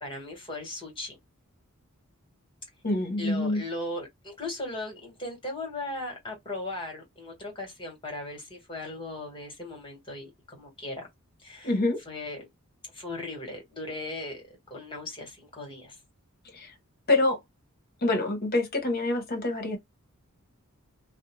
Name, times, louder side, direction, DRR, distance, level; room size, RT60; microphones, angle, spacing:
voice 1, 0.0-1.2 3.2-11.1 11.4-11.8 12.0-12.4 12.9-16.0, left 2 dB, 25° left, 1.4 m, -38 dB
voice 2, 2.8-3.6 11.6-12.0 16.5-16.7 17.1-17.4 18.0-19.8, left 2 dB, 45° left, 0.9 m, -26 dB
2.6 x 2.0 x 3.0 m
head